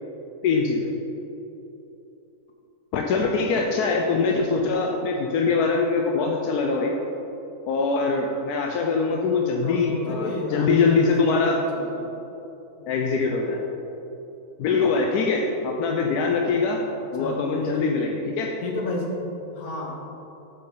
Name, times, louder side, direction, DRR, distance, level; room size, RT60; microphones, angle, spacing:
voice 1, 0.4-0.9 2.9-6.9 7.7-11.6 12.9-13.6 14.6-16.8 17.1-18.5, left 4 dB, 90° left, 1 dB, 1.2 m, -23 dB
voice 2, 9.6-12.2 12.8-13.2 17.0-17.9 18.6-19.2 19.5-20.1, left 2 dB, 70° left, 0 dB, 1.6 m, -33 dB
7.7 x 7.3 x 3.8 m, 3.0 s
omnidirectional pair, 1.6 m